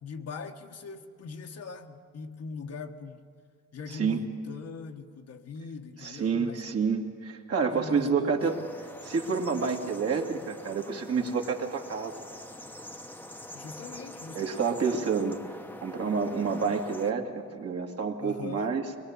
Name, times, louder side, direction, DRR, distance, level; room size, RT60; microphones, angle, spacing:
voice 1, 0.0-3.2 3.7-6.6 7.6-8.6 13.5-14.9 18.2-18.7, left 5 dB, 55° left, 5 dB, 1.4 m, -41 dB
voice 2, 6.0-8.6 9.0-12.2 14.4-15.4 15.8-18.8, right 5 dB, 50° right, 2 dB, 2.3 m, -28 dB
sound 1, 8.4-17.1, left 1 dB, 5° left, 1.1 m, -45 dB
22.5 x 21.5 x 7.3 m, 2.2 s
cardioid pair, 90°, 30 cm